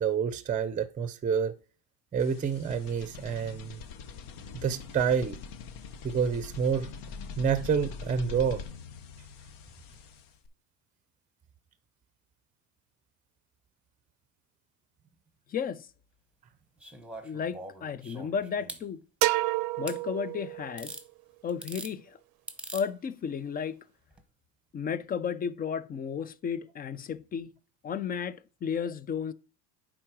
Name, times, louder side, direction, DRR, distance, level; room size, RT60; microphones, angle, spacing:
voice 1, 0.0-1.5 2.1-3.8 4.5-5.4 6.0-6.9 7.4-8.6, right 7 dB, 20° right, 0.6 m, -28 dB
sound 1, 2.2-10.5, left 5 dB, 60° left, 0.9 m, -43 dB
voice 2, 15.5-15.9 17.2-19.0 19.8-21.0 21.4-22.2 22.7-23.8 24.7-27.5 27.8-29.3, left 7 dB, 25° left, 0.4 m, -33 dB
sound 2, 16.8-18.8 19.9-20.0 20.8-21.0 21.5-21.9 22.5-22.9 24.1-24.2, right 2 dB, 5° right, 1.1 m, -42 dB
sound 3, 19.2-21.0, right 19 dB, 65° right, 0.6 m, -29 dB
9.4 x 3.8 x 4.6 m
supercardioid pair, 105°, 38 cm